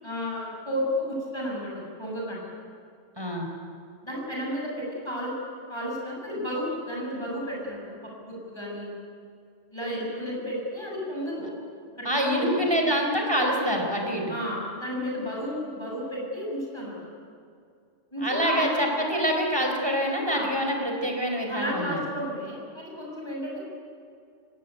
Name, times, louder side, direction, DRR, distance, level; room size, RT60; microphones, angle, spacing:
voice 1, 0.0-2.4 4.0-5.3 5.7-7.9 8.2-8.9 9.7-11.5 12.2-12.4 14.3-17.1 18.1-18.7 20.3-20.5 21.5-23.6, equal, 20° left, -3 dB, 7.9 m, -32 dB
voice 2, 3.2-3.5 12.0-14.3 18.2-22.0, equal, 20° right, 2 dB, 4.7 m, -26 dB
24.0 x 18.5 x 9.5 m, 2.3 s
omnidirectional pair, 1.3 m